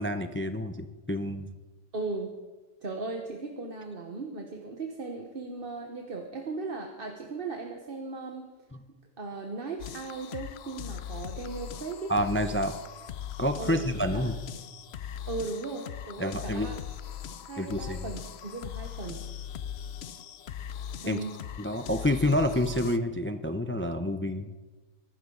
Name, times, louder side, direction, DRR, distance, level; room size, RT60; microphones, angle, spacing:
voice 1, 0.0-1.5 8.7-8.8 12.1-12.7 13.4-14.4 16.2-16.7 17.6-18.1 21.1-21.2 21.6-24.5, equal, 15° left, 8 dB, 0.5 m, -28 dB
voice 2, 1.9-2.3 2.8-8.5 9.2-12.1 13.6-13.8 14.1-14.3 15.3-16.8 17.4-19.2 21.0-21.4, right 3 dB, 45° right, 2 dB, 1.4 m, -37 dB
sound 1, 9.8-23.0, left 9 dB, 60° left, 0.8 m, -40 dB
23.5 x 12.5 x 3.9 m, 1.2 s
omnidirectional pair, 1.3 m